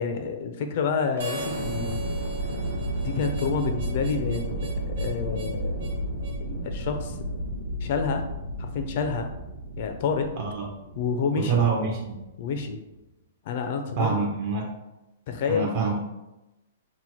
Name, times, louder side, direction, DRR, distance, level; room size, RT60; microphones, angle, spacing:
voice 1, 0.0-2.0 3.0-5.8 6.4-7.2 7.8-8.2 8.6-9.3 9.8-10.3 11.0-11.6 12.4-12.8 13.5-14.2 15.3-15.8, left 5 dB, 45° left, 5 dB, 0.4 m, -28 dB
Harmonica, 1.2-6.4, right 2 dB, 65° right, 0.9 m, -39 dB
sound 1, 1.2-13.0, right 1 dB, 85° right, 1.0 m, -33 dB
voice 2, 11.3-12.1 14.0-14.7 15.5-16.0, right 5 dB, 40° right, 0 dB, 0.4 m, -26 dB
2.9 x 2.1 x 4.1 m, 0.98 s
hypercardioid pair, 165°, 0 cm